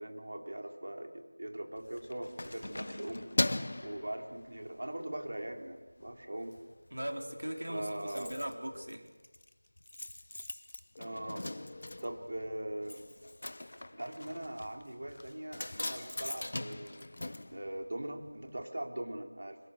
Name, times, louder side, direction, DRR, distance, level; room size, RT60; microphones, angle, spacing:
voice 1, 0.0-3.3 3.8-6.6 7.7-8.3 11.0-11.5 12.0-13.1 13.9-17.1 17.5-19.6, right 1 dB, 50° right, 3 dB, 4.1 m, -41 dB
Keys jangling, 1.8-4.9 5.3-5.5 5.9-6.6 6.9-7.0 7.2-7.3 7.5-18.3 18.6-18.7, left 1 dB, 40° left, 0.9 m, -40 dB
voice 2, 6.9-9.1, right 1 dB, 90° right, 2 dB, 4.5 m, -39 dB
sound 1, 7.0-9.0 11.0-13.0, left 2 dB, 15° left, 1.0 m, -52 dB
26.5 x 25.5 x 6.7 m, 1.3 s
figure-of-eight pair, 180°, 0 cm